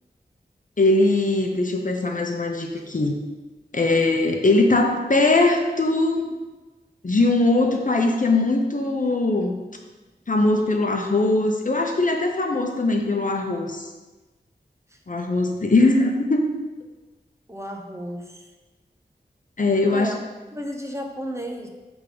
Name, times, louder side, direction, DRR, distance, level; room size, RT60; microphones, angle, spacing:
voice 1, 0.8-3.1 3.7-6.3 7.0-9.6 10.3-13.8 15.1-16.4 19.6-20.1, left 2 dB, 50° left, 3 dB, 0.8 m, -21 dB
voice 2, 17.5-18.5 19.9-20.2 20.5-21.7, equal, 15° right, 1 dB, 0.8 m, -33 dB
6.6 x 3.6 x 5.0 m, 1.2 s
wide cardioid pair, 55°, 17 cm